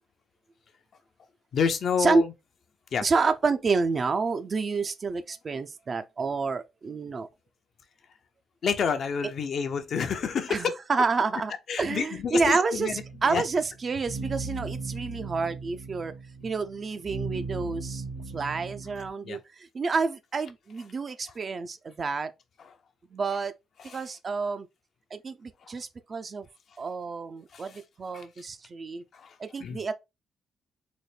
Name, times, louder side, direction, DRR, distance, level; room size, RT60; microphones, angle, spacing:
voice 1, 1.5-2.3 2.9-3.1 8.6-10.7 11.7-13.0 13.3-13.4 16.4-16.5 19.2-19.4 23.8-24.0 25.6-25.7 27.5-27.8 28.1-28.3 29.1-29.8, left 6 dB, 60° left, 0.5 m, -29 dB
voice 2, 3.0-7.3 10.5-11.5 11.8-12.9 13.2-16.1 16.4-18.0 18.3-22.3 23.1-23.5 23.9-24.7 25.1-26.5 26.8-29.0 29.4-29.9, right 4 dB, 40° right, 0.4 m, -29 dB
sound 1, 12.9-19.1, right 4 dB, 70° right, 1.2 m, -37 dB
3.9 x 2.1 x 3.3 m
cardioid pair, 90°, 0 cm